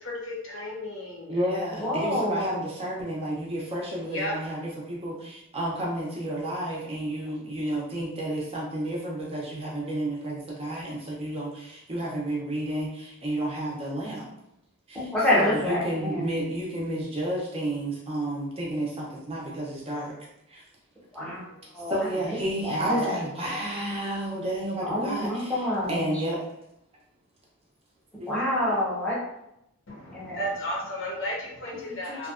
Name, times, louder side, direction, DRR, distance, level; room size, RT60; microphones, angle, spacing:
voice 1, 0.0-1.4 4.1-4.3 29.9-32.3, equal, 60° left, -3 dB, 0.7 m, -34 dB
voice 2, 1.3-14.3 14.9-20.1 20.5-20.6 21.9-25.6 25.9-26.4 28.2-28.3 28.7-28.8 31.9-32.3, right 1 dB, 25° right, -4 dB, 0.4 m, -31 dB
voice 3, 1.8-2.6 14.9-16.3 21.1-21.4 21.7-21.9 22.3-22.4 22.6-23.2 24.8-26.2 28.3-29.2 30.1-30.4, left 1 dB, 5° left, -8 dB, 0.7 m, -27 dB
2.6 x 2.2 x 2.4 m, 0.81 s
head